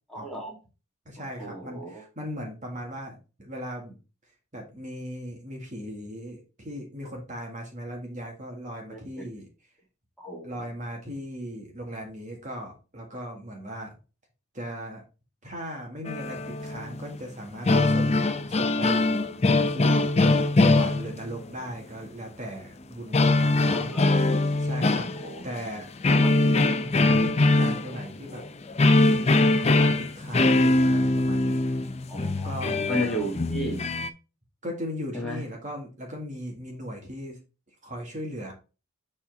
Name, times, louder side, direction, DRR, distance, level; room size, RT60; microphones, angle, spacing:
voice 1, 0.1-0.6 1.4-2.0 8.9-9.3 10.2-10.6 23.6-24.1 25.2-25.4 26.0-26.3 32.1-33.8 35.1-35.4, right 1 dB, ahead, -3 dB, 2.1 m, -35 dB
voice 2, 1.1-4.0 4.5-9.5 10.4-13.9 14.5-15.0 15.4-19.2 19.7-24.2 24.6-25.1 25.4-28.4 28.9-31.6 32.4-32.8 34.6-37.4 37.8-38.5, equal, 35° right, 1 dB, 1.8 m, -38 dB
sound 1, 16.1-17.2 17.4-21.5 23.1-25.7 26.0-34.1, left 2 dB, 30° left, 0.5 m, -22 dB
7.1 x 4.2 x 3.9 m, 0.31 s
head